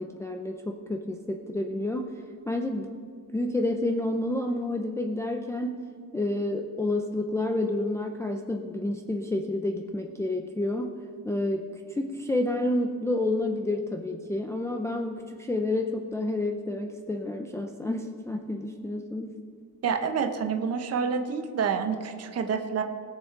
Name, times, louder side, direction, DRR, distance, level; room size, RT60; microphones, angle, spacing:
voice 1, 0.0-2.1 2.5-2.9 3.3-5.8 6.1-10.9 11.2-11.6 11.9-19.3, left 2 dB, 10° left, 2 dB, 0.5 m, -29 dB
voice 2, 19.8-22.8, right 6 dB, 45° right, 6 dB, 1.0 m, -28 dB
20.0 x 7.0 x 4.7 m, 2.2 s
cardioid pair, 170°, 34 cm